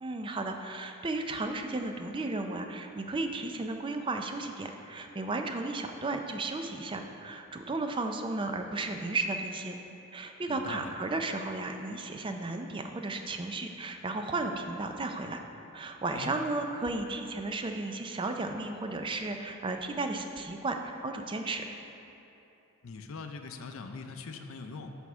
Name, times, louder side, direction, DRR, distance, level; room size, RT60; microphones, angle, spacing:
voice 1, 0.0-9.8 10.1-15.4 15.7-21.6, right 2 dB, 20° right, 5 dB, 0.4 m, -34 dB
voice 2, 10.5-10.9 16.1-16.3 22.8-25.0, left 4 dB, 65° left, 6 dB, 0.5 m, -41 dB
9.1 x 3.5 x 6.1 m, 2.9 s
head